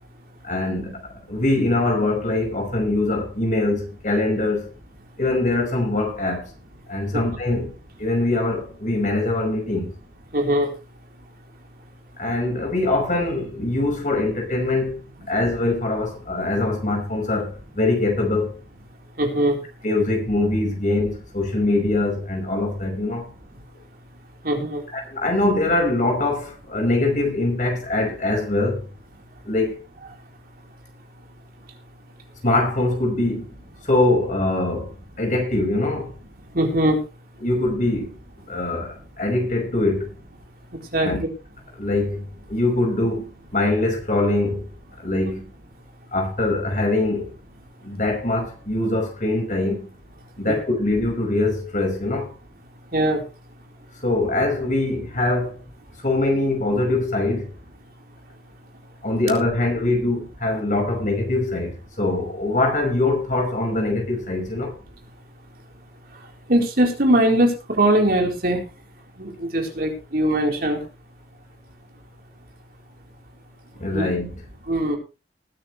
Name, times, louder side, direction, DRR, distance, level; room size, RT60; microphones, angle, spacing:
voice 1, 0.4-4.7 5.2-6.5 6.9-7.7 8.0-9.9 12.2-15.0 15.3-18.5 19.8-23.3 24.9-28.8 29.4-29.8 32.4-33.5 33.8-34.9 35.2-36.1 37.4-38.1 38.5-40.1 41.0-41.2 41.8-44.7 45.0-45.5 46.1-47.3 47.8-49.9 50.4-52.3 54.0-55.5 56.0-57.5 59.0-64.8 73.8-74.3, left 2 dB, 45° left, 5.5 m, -23 dB
voice 2, 10.3-10.7 19.2-19.6 24.4-24.8 36.4-37.0 40.7-41.3 50.5-50.6 52.9-53.2 66.1-68.6 69.2-70.9 73.9-74.1 74.7-75.0, right 1 dB, 60° right, 4.1 m, -21 dB
20.0 x 9.8 x 3.3 m
head